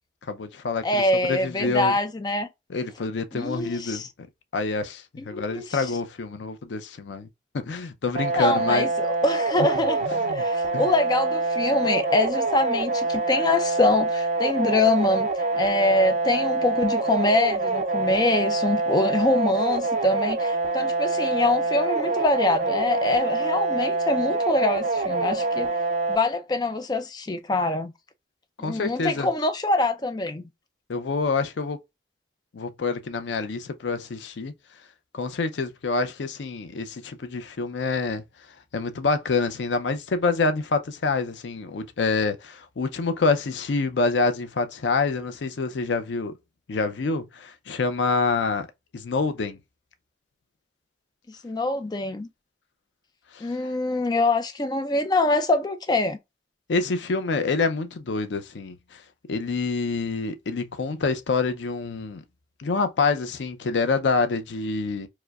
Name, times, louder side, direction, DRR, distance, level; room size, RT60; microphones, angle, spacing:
voice 1, 0.3-2.0 2.7-4.1 4.5-7.3 7.5-8.9 10.3-10.4 10.7-10.9 28.6-29.3 30.9-31.8 32.5-34.5 35.1-38.2 38.7-46.3 46.7-48.7 48.9-49.6 53.3-53.5 56.7-59.0 59.3-62.2 62.6-65.1, left 4 dB, 85° left, 0.5 m, -27 dB
voice 2, 0.8-2.5 3.3-4.1 5.2-5.9 8.3-10.0 10.3-15.3 15.5-25.7 26.1-27.9 28.6-30.4 51.4-52.3 53.4-56.2, left 2 dB, 20° left, 0.4 m, -24 dB
sound 1, 8.2-26.2, right 3 dB, 40° right, 0.6 m, -25 dB
4.7 x 2.1 x 2.3 m
head